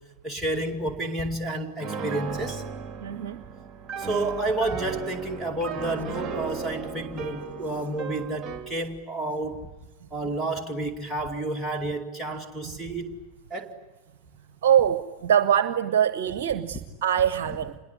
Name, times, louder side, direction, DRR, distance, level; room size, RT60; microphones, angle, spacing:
voice 1, 0.2-2.6 4.0-9.6 10.1-13.2 13.5-13.8, right 2 dB, ahead, 2.4 m, -30 dB
Piano, 1.8-8.7, right 5 dB, 20° right, 3.0 m, -36 dB
voice 2, 3.0-3.4 14.6-17.8, right 9 dB, 55° right, 0.9 m, -23 dB
27.0 x 21.5 x 9.7 m
figure-of-eight pair, 90°, 0 cm